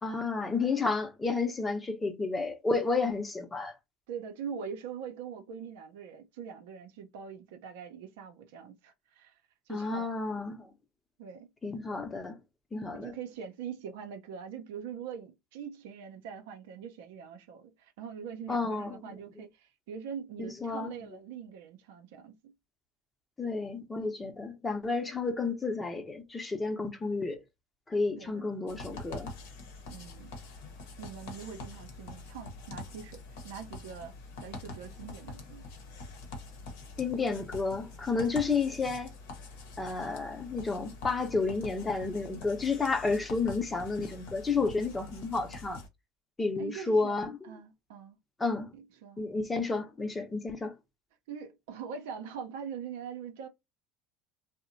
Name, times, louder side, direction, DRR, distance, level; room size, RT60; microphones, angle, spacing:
voice 1, 0.0-3.7 9.7-10.7 11.6-12.3 12.7-13.1 18.5-19.2 20.4-20.9 23.4-27.4 27.9-29.3 37.0-39.1 39.8-45.8 46.4-47.4 48.4-48.7 49.2-50.7, left 4 dB, 20° left, 0.7 m, -31 dB
voice 2, 4.1-9.4 9.7-10.1 11.2-11.5 12.9-22.5 28.2-28.5 29.9-30.4 31.0-34.1 34.4-35.7 38.1-38.3 46.6-48.2 48.7-49.2 51.3-53.5, right 7 dB, 80° right, 0.5 m, -43 dB
sound 1, 28.7-45.9, left 3 dB, 75° left, 0.8 m, -45 dB
2.7 x 2.1 x 2.6 m
hypercardioid pair, 90°, 0 cm